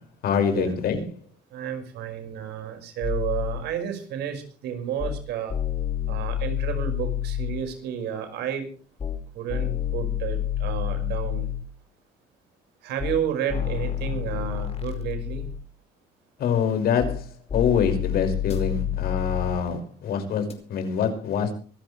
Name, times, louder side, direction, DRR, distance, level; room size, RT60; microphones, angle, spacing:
voice 1, 0.2-1.0 16.4-17.3 17.5-21.5, left 7 dB, 65° left, 6 dB, 5.5 m, -25 dB
voice 2, 1.5-5.5 6.1-8.7 9.3-11.5 12.8-15.5, right 9 dB, 80° right, 6 dB, 5.4 m, -31 dB
sound 1, 3.0-3.6 5.0-5.2 5.5-7.6 9.0-9.2 9.5-11.6 13.0-13.2 13.5-15.6 17.0-17.2 17.5-19.6 20.5-20.6, left 10 dB, 40° left, 4.7 m, -28 dB
25.5 x 13.0 x 3.3 m, 0.40 s
cardioid pair, 110°, 17 cm